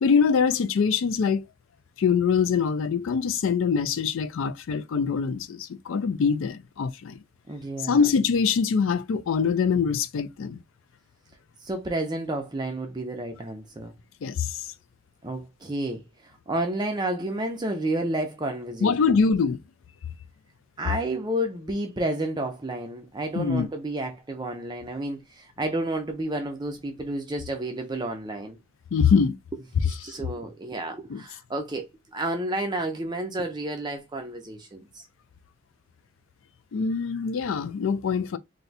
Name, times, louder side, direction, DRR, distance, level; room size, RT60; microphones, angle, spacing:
voice 1, 0.0-1.5 2.0-7.2 7.8-10.6 14.2-14.7 18.8-19.6 23.3-23.7 28.9-29.3 30.0-30.1 31.1-31.2 36.7-38.4, left 6 dB, 60° left, 0.3 m, -24 dB
voice 2, 7.5-8.0 11.6-13.9 15.2-16.0 16.5-19.2 20.8-28.6 29.8-31.8 32.1-34.9, right 1 dB, 20° right, 0.5 m, -30 dB
2.6 x 2.2 x 3.9 m
head